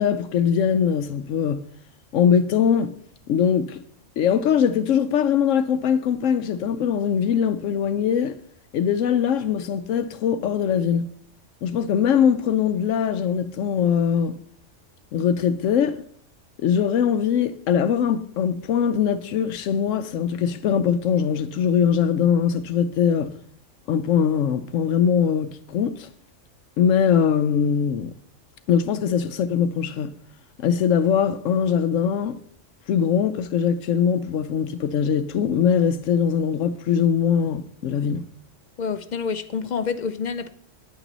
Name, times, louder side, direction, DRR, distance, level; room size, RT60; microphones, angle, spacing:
voice 1, 0.0-1.6 2.1-2.9 3.3-3.8 4.2-8.3 8.7-11.1 11.6-14.4 15.1-16.0 16.6-23.3 23.9-26.1 26.8-28.1 28.7-30.1 30.6-32.3 32.9-38.2, left 8 dB, 80° left, 0.9 m, -21 dB
voice 2, 38.8-40.5, left 5 dB, 60° left, 0.5 m, -27 dB
9.6 x 9.0 x 4.0 m
omnidirectional pair, 1.3 m